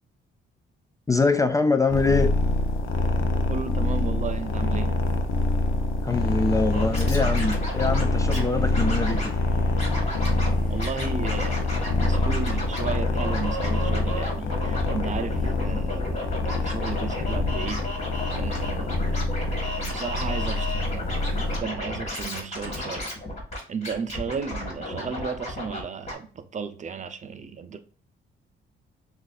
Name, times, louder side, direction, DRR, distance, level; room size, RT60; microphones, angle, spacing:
voice 1, 1.1-2.3 6.0-9.3, left 3 dB, 15° left, 0.3 m, -24 dB
sound 1, 1.9-21.6, left 2 dB, 80° left, 0.8 m, -26 dB
voice 2, 3.5-5.0 10.7-19.3 19.8-23.1 23.7-27.8, right 6 dB, 40° right, 0.6 m, -34 dB
sound 2, 6.1-11.1, left 2 dB, 50° left, 1.0 m, -48 dB
Scratching (performance technique), 6.7-8.4 8.7-9.3 9.8-10.5 10.8-25.8 26.1-26.2, left 1 dB, 35° left, 2.1 m, -33 dB
6.2 x 2.5 x 2.5 m
cardioid pair, 90°, 20 cm